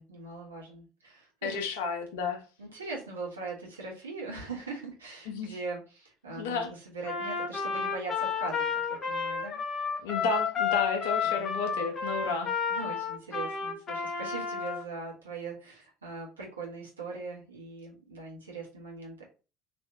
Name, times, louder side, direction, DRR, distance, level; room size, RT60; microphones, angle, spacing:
voice 1, 0.0-1.7 2.6-9.6 11.2-11.6 12.7-19.2, right 3 dB, 75° right, 1.3 m, -41 dB
voice 2, 1.4-2.4 5.3-5.5 6.3-6.7 10.0-12.5, left 4 dB, 60° left, 0.8 m, -32 dB
Trumpet, 7.0-14.8, left 6 dB, 30° left, 1.0 m, -31 dB
3.1 x 2.7 x 2.7 m
figure-of-eight pair, 65°, 0 cm